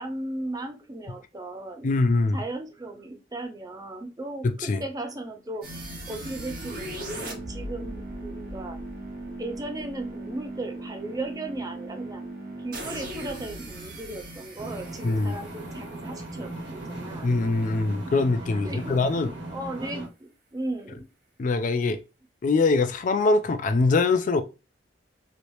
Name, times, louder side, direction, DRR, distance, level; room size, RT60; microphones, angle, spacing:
voice 1, 0.0-1.9 2.3-5.7 6.1-8.8 9.4-12.3 12.6-17.4 18.6-19.1 19.5-21.1, right 2 dB, 20° right, 0.5 m, -36 dB
voice 2, 1.8-2.4 4.4-4.8 15.0-15.3 17.2-19.3 21.4-22.0 22.4-24.4, left 3 dB, 45° left, 0.3 m, -23 dB
sound 1, 5.6-16.6, right 1 dB, 50° right, 1.1 m, -38 dB
sound 2, 14.6-20.1, right 1 dB, 80° right, 1.4 m, -38 dB
3.2 x 2.9 x 2.6 m
head